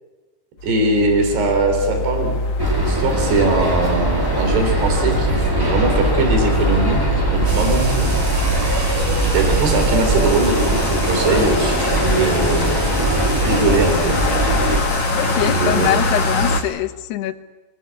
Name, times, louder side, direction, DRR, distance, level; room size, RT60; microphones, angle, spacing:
sound 1, 0.6-16.6, left 2 dB, 60° left, 1.7 m, -24 dB
voice 1, 0.6-2.4 2.8-8.1 9.3-12.7 13.4-14.2 15.4-15.9, right 2 dB, 75° right, 4 dB, 5.6 m, -21 dB
sound 2, 2.6-14.8, right 2 dB, 10° right, 1.0 m, -21 dB
sound 3, 7.4-16.6, right 2 dB, 40° right, 5.0 m, -31 dB
voice 2, 15.1-17.3, left 13 dB, 80° left, 8 dB, 3.1 m, -23 dB
25.0 x 19.5 x 8.5 m, 1.2 s
omnidirectional pair, 4.7 m